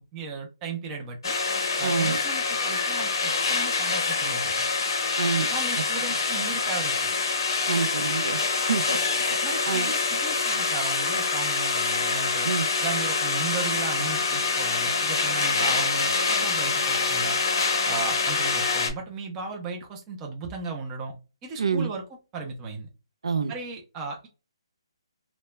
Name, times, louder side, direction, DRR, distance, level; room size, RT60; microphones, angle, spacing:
voice 1, 0.1-1.3 1.8-4.7 5.5-7.1 9.4-12.5 12.8-17.4 17.9-21.1 21.4-22.0 22.3-22.9 23.5-24.3, right 4 dB, 10° right, 0.4 m, -36 dB
sound 1, 1.2-18.9, left 4 dB, 50° left, 0.6 m, -25 dB
voice 2, 1.8-2.2 5.2-5.5 7.7-9.4 9.7-9.9 12.4-12.7 21.6-21.9 23.2-23.5, right 5 dB, 85° right, 0.4 m, -27 dB
2.2 x 2.0 x 3.0 m
hypercardioid pair, 175°, 3 cm